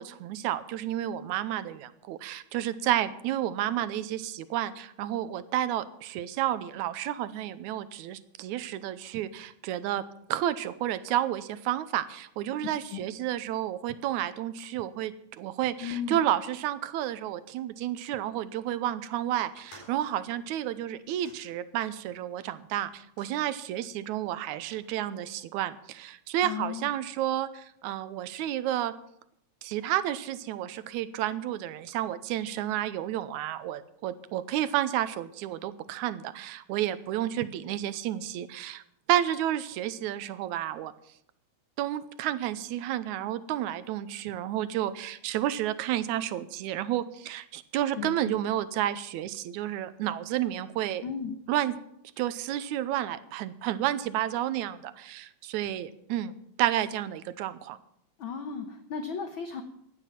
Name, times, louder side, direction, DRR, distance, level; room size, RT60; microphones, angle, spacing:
voice 1, 0.0-28.9 29.6-38.8 39.1-40.9 41.8-51.0 51.5-51.7 52.2-56.3 56.6-57.8, right 12 dB, 85° right, 14 dB, 2.1 m, -31 dB
voice 2, 15.8-16.2 26.4-26.9 47.9-48.4 51.0-51.4 58.2-59.6, left 6 dB, 60° left, 7 dB, 1.4 m, -35 dB
sound 1, 19.4-22.2 22.8-23.4 24.2-24.8, left 1 dB, 90° left, 5.9 m, -56 dB
16.0 x 11.0 x 5.8 m, 0.74 s
omnidirectional pair, 3.4 m